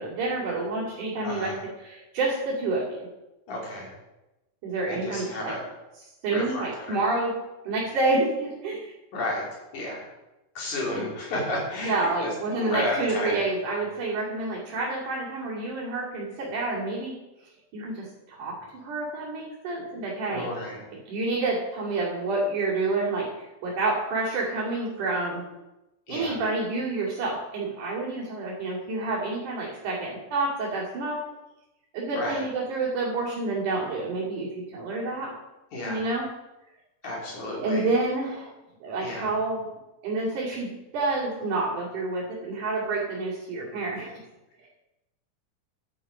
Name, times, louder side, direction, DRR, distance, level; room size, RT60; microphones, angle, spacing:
voice 1, 0.0-3.1 4.6-5.5 6.2-7.4 7.6-8.9 11.8-17.1 17.7-20.5 20.9-25.4 26.1-31.2 31.9-35.3 35.9-36.3 37.6-38.5 38.8-39.7 40.0-44.1 44.6-44.7, right 2 dB, 90° right, -8 dB, 4.1 m, -28 dB
voice 2, 1.2-1.6 3.5-3.9 4.9-5.6 6.3-7.0 9.1-9.4 9.7-10.1 10.6-13.4 20.3-20.8 26.1-26.4 32.2-32.4 35.7-36.0 37.0-37.8 39.0-39.3, left 1 dB, 70° left, -3 dB, 4.5 m, -32 dB
11.0 x 8.8 x 5.1 m, 0.99 s
omnidirectional pair, 3.5 m